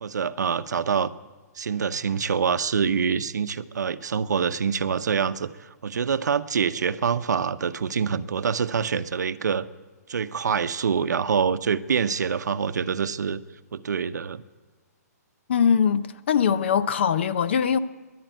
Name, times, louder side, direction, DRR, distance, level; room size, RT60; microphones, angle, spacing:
voice 1, 0.0-1.1 1.6-9.7 10.1-13.4 13.7-14.4, right 6 dB, 85° right, 0.7 m, -25 dB
voice 2, 15.5-17.8, left 7 dB, 40° left, 0.6 m, -22 dB
13.5 x 11.0 x 9.1 m
hypercardioid pair, 170°, 9 cm